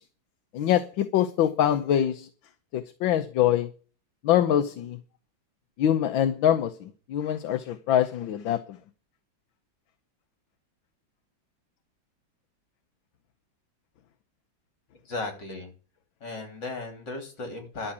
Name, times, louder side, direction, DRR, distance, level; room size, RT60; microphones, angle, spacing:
voice 1, 0.5-2.3 2.7-3.7 4.2-5.0 5.8-8.8, left 10 dB, 80° left, 1.6 m, -24 dB
voice 2, 15.1-15.7 16.2-17.9, left 3 dB, 65° left, 4.0 m, -36 dB
11.5 x 6.7 x 8.3 m
omnidirectional pair, 2.1 m